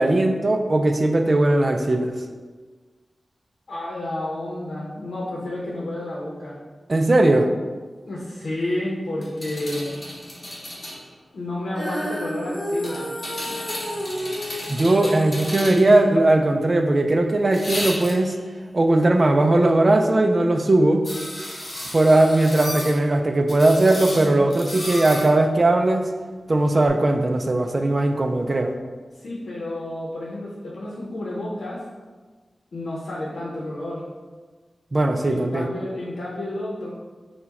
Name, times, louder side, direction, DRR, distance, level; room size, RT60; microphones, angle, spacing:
voice 1, 0.0-2.1 6.9-7.5 14.7-18.3 18.7-21.0 21.9-26.0 26.5-28.7 34.9-35.7, right 2 dB, 40° right, 5 dB, 0.3 m, -19 dB
voice 2, 3.7-6.6 8.1-10.0 11.3-13.1 29.2-31.8 32.7-34.0 35.3-36.9, left 1 dB, 90° left, -5 dB, 0.7 m, -30 dB
sound 1, 9.2-11.0 12.8-16.0 17.5-18.4 21.0-23.0 23.5-25.3 26.9-27.0, left 1 dB, 35° left, 1.0 m, -33 dB
Female singing, 11.7-18.0, equal, 5° left, 0.8 m, -32 dB
4.5 x 2.2 x 4.1 m, 1.4 s
wide cardioid pair, 100°, 0 cm